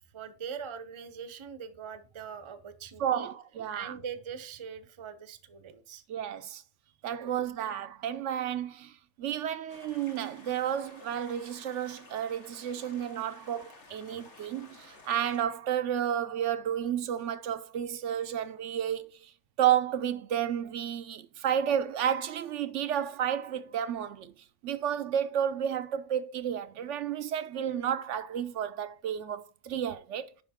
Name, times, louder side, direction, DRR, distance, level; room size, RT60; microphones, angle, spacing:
voice 1, 0.1-3.3 3.7-6.0 7.2-7.3, right 7 dB, 30° right, 0.6 m, -42 dB
voice 2, 3.0-4.0 6.1-6.6 7.0-19.3 19.6-24.3 24.6-30.3, right 9 dB, 75° right, 0.9 m, -31 dB
sound 1, 9.7-15.4, left 3 dB, 70° left, 1.9 m, -53 dB
10.5 x 5.2 x 3.5 m
omnidirectional pair, 1.3 m